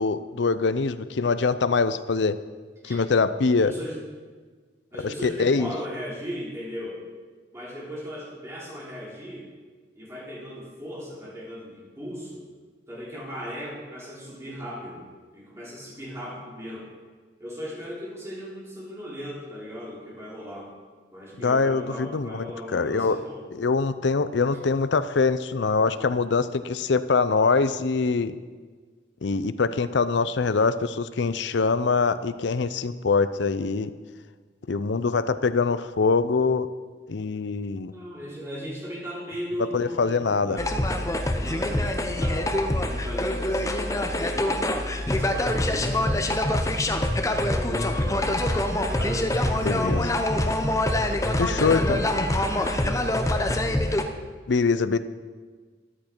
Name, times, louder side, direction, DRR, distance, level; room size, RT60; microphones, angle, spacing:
voice 1, 0.0-2.4 2.8-3.7 5.0-5.7 21.4-22.5 22.7-23.2 23.5-28.3 29.2-33.9 34.7-36.7 37.1-37.9 39.7-40.6 49.6-50.1 51.4-52.0 54.5-55.0, left 4 dB, 70° left, 13 dB, 0.5 m, -23 dB
voice 2, 3.5-4.0 4.9-7.0 7.5-9.5 9.9-12.4 12.9-15.0 15.3-16.9 17.4-20.7 21.1-23.4 24.5-24.6 37.9-40.7 41.3-44.7 45.1-46.2 47.1-50.2 51.0-53.1, equal, 15° right, -6 dB, 3.3 m, -37 dB
sound 1, 40.6-54.0, left 1 dB, 15° left, 0.7 m, -25 dB
13.5 x 10.5 x 4.5 m, 1.5 s
head